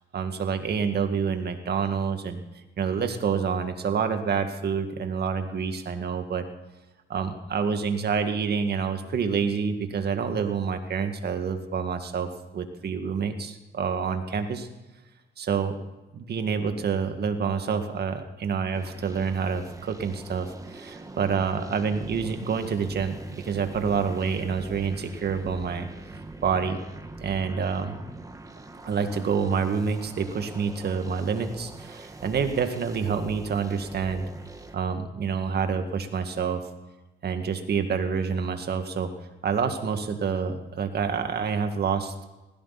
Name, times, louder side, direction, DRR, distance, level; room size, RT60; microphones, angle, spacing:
voice 1, 0.1-2.4 2.8-6.5 7.1-14.7 15.4-15.8 16.1-25.9 26.4-26.8 27.2-28.0 28.8-34.2 34.7-36.6 37.2-39.1 39.4-42.1, right 6 dB, 55° right, 6 dB, 2.1 m, -27 dB
sound 1, 18.7-34.7, right 2 dB, 15° right, 1.5 m, -43 dB
19.5 x 16.5 x 4.2 m, 1.1 s
cardioid pair, 90°, 20 cm